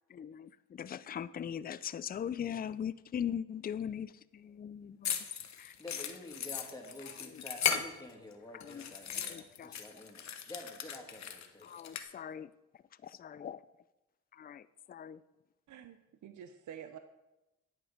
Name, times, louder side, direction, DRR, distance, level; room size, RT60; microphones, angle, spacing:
voice 1, 0.1-5.2 5.6-5.7 8.7-8.8 9.3-9.7 11.6-12.5 13.0-13.6 14.4-14.6 14.9-15.2, left 8 dB, 30° left, 0.4 m, -40 dB
sound 1, 5.0-8.3 8.6-12.0, left 8 dB, 60° left, 1.0 m, -37 dB
voice 2, 5.8-11.7, left 1 dB, 10° left, 2.4 m, -49 dB
voice 3, 16.2-17.0, right 9 dB, 70° right, 0.7 m, -48 dB
9.5 x 7.7 x 5.2 m
cardioid pair, 75°, 31 cm